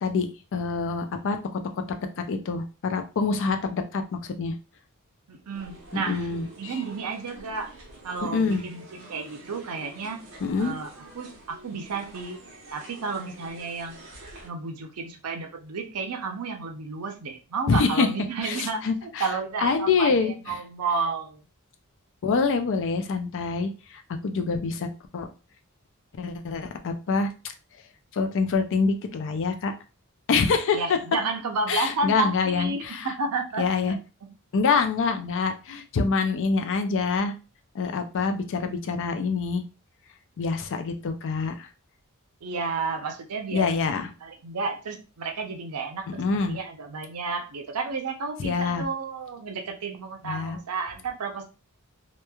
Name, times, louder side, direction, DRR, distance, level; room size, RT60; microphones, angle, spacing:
voice 1, 0.0-1.8 2.3-4.5 5.9-6.7 8.3-8.6 10.4-10.7 17.7-18.1 18.4-19.3 19.6-20.3 22.2-24.9 25.1-25.3 26.2-27.3 28.1-29.7 30.3-30.8 31.7-33.1 33.6-34.0 34.5-37.3 37.7-39.6 40.4-41.7 43.5-44.1 46.2-46.6 48.4-48.8 50.2-50.6, left 4 dB, 60° left, 7 dB, 0.4 m, -26 dB
voice 2, 5.3-6.3 6.6-7.7 8.0-10.2 10.6-10.9 11.1-12.4 12.7-14.0 14.4-21.4 30.7-34.4 42.4-43.7 44.2-51.5, right 4 dB, 85° right, 4 dB, 0.6 m, -32 dB
sound 1, 5.5-14.5, right 2 dB, 60° right, 0.9 m, -47 dB
3.0 x 2.2 x 2.2 m, 0.32 s
head